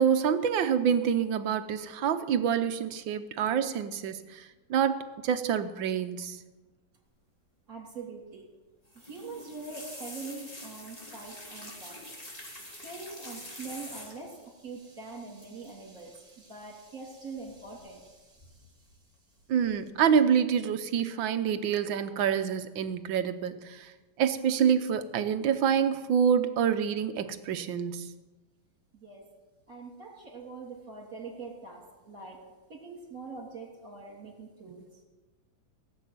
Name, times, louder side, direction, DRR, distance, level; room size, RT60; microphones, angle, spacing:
voice 1, 0.0-6.4 19.5-23.9 24.2-28.1, right 8 dB, 80° right, 10 dB, 1.6 m, -27 dB
voice 2, 7.7-8.5 9.0-12.2 12.8-18.8 28.9-29.3 29.7-32.4 32.7-34.9, right 4 dB, 45° right, 0 dB, 3.6 m, -44 dB
sound 1, 8.9-14.4 15.4-15.7 16.0-16.3 17.5-18.0 18.4-18.9 19.4-19.8 20.2-20.3, left 1 dB, 20° left, 2.6 m, -45 dB
17.0 x 7.9 x 9.2 m, 1.2 s
omnidirectional pair, 2.1 m